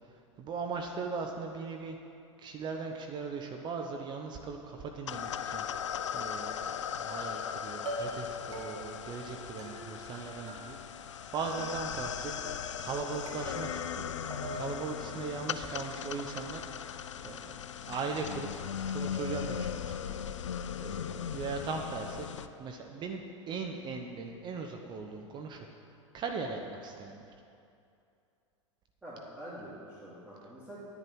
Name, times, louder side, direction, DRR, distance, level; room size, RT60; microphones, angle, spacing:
voice 1, 0.4-2.0 2.4-5.6 6.1-10.8 11.3-12.3 12.8-14.1 14.5-16.6 17.2-17.6 17.9-20.2 20.8-22.3 22.6-25.7 26.1-27.3, right 4 dB, 30° right, 3 dB, 0.8 m, -39 dB
sound 1, 5.1-22.5, left 8 dB, 70° left, 0.4 m, -38 dB
sound 2, 7.2-7.5 7.8-8.3 8.5-9.0 9.6-10.2 10.5-11.1 11.4-12.0 12.4-12.9 13.3-14.0 14.3-14.8, right 2 dB, 60° right, 2.0 m, -43 dB
voice 2, 15.0-15.4 21.2-21.3 29.0-30.8, right 1 dB, 10° right, -9 dB, 2.6 m, -47 dB
10.5 x 10.0 x 4.7 m, 2.6 s
figure-of-eight pair, 90°, 16 cm